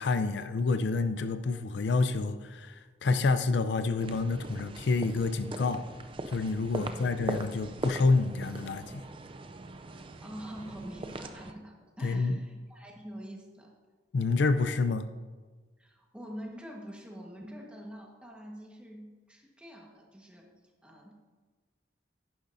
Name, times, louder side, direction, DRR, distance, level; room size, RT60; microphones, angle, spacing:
voice 1, 0.0-5.8 6.3-9.0 12.0-12.4 14.1-15.1, left 3 dB, 70° left, 10 dB, 0.5 m, -28 dB
sound 1, 4.0-11.5, right 2 dB, 30° right, 0.4 m, -40 dB
voice 2, 6.7-7.3 9.9-13.7 15.8-20.5 20.8-21.1, equal, 5° right, -1 dB, 1.3 m, -45 dB
11.0 x 10.0 x 2.6 m, 1.4 s
head